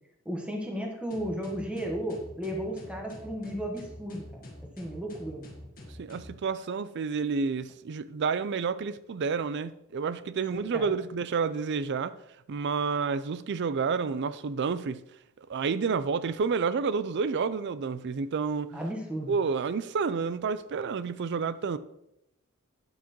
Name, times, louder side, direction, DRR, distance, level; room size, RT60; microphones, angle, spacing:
voice 1, 0.2-4.5 4.8-5.5 10.5-10.9 18.7-19.3, equal, 5° right, 1.3 m, -34 dB
sound 1, 1.1-6.4, left 1 dB, 40° left, 1.4 m, -46 dB
voice 2, 6.0-12.1 12.5-15.0 15.5-18.8 19.3-21.8, right 5 dB, 55° right, 0.4 m, -29 dB
9.3 x 7.3 x 3.0 m
head